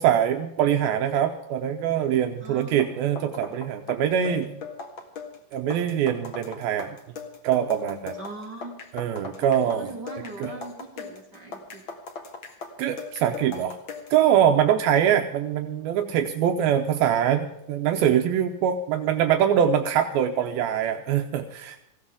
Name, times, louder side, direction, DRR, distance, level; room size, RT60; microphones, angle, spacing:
voice 1, 0.0-4.6 5.5-6.9 7.4-8.1 8.9-9.9 10.4-10.5 12.8-13.8 14.1-21.8, right 9 dB, 80° right, 5 dB, 2.6 m, -23 dB
voice 2, 2.4-2.8 8.2-8.8 9.6-11.8, right 2 dB, 50° right, -1 dB, 1.3 m, -40 dB
sound 1, 2.6-14.2, left 4 dB, 45° left, 1.8 m, -39 dB
19.0 x 16.0 x 3.8 m, 0.83 s
omnidirectional pair, 4.3 m